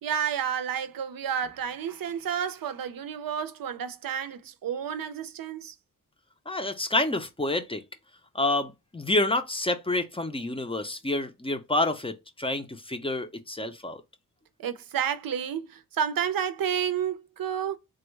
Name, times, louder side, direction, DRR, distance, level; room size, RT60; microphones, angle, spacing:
voice 1, 0.0-5.7 14.6-17.8, right 8 dB, 80° right, 0.5 m, -30 dB
voice 2, 6.5-7.8 8.3-14.0, left 2 dB, 15° left, 0.5 m, -28 dB
3.5 x 2.0 x 3.1 m
wide cardioid pair, 100°, 34 cm